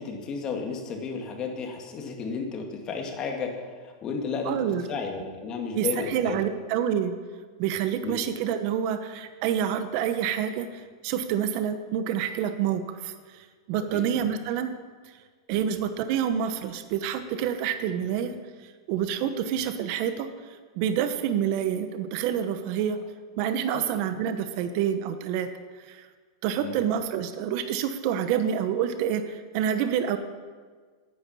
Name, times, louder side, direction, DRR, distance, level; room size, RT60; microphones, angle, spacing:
voice 1, 0.0-3.5 4.0-4.6 4.9-6.4 8.0-8.1 13.9-14.0 23.7-23.9 26.6-26.8, left 5 dB, 30° left, 2 dB, 2.1 m, -33 dB
voice 2, 4.4-4.8 5.7-7.1 7.6-14.8 15.5-18.3 18.9-20.3 20.8-23.0 23.4-25.5 25.9-26.1 26.4-30.2, right 9 dB, 50° right, 9 dB, 1.0 m, -27 dB
9.9 x 9.6 x 7.0 m, 1.5 s
supercardioid pair, 135°, 3 cm